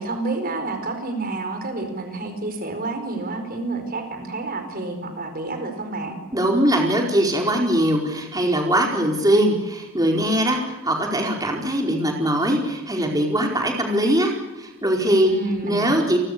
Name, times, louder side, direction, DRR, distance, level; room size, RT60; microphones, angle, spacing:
voice 1, 0.0-6.2 15.3-16.1, right 3 dB, 45° right, 7 dB, 4.7 m, -29 dB
voice 2, 6.3-15.3 15.6-16.2, right 1 dB, 20° right, 1 dB, 4.7 m, -21 dB
30.0 x 23.5 x 6.9 m, 1.0 s
head